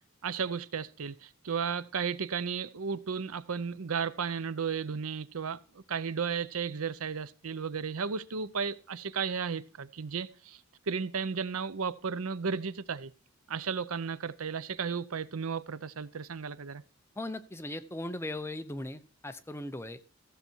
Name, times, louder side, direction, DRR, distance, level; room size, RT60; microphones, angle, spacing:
voice 1, 0.2-10.6 10.9-13.1 13.5-16.8, right 6 dB, 90° right, 0.7 m, -34 dB
voice 2, 17.2-20.0, left 1 dB, 10° left, 0.6 m, -38 dB
14.5 x 6.8 x 4.5 m
head